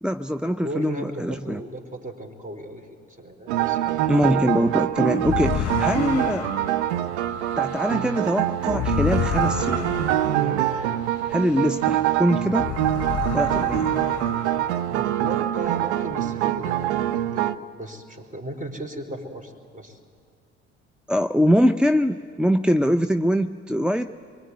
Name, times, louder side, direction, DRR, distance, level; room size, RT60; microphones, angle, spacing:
voice 1, 0.0-1.6 4.1-6.5 7.6-9.9 11.3-12.7 13.3-14.0 21.1-24.2, equal, 5° right, 7 dB, 0.6 m, -23 dB
voice 2, 0.6-4.1 10.4-10.6 14.9-20.0, right 1 dB, 20° right, 7 dB, 4.2 m, -36 dB
sound 1, 3.5-17.6, right 13 dB, 80° right, 0.7 m, -24 dB
sound 2, 5.2-12.1 12.4-15.1, left 11 dB, 45° left, 0.9 m, -31 dB
25.5 x 23.0 x 9.6 m, 2.2 s
hypercardioid pair, 55°, 35 cm